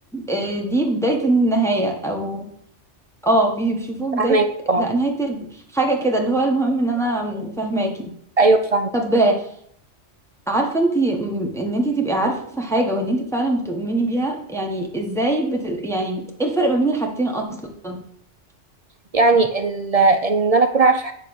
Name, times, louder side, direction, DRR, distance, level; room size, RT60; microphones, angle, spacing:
voice 1, 0.1-2.4 3.2-4.4 4.8-8.1 8.9-9.5 10.5-18.0, right 2 dB, 5° left, 0 dB, 1.1 m, -22 dB
voice 2, 4.2-4.9 8.4-8.9 19.1-21.1, right 3 dB, 50° right, 7 dB, 0.4 m, -17 dB
9.0 x 3.7 x 6.3 m, 0.67 s
omnidirectional pair, 1.2 m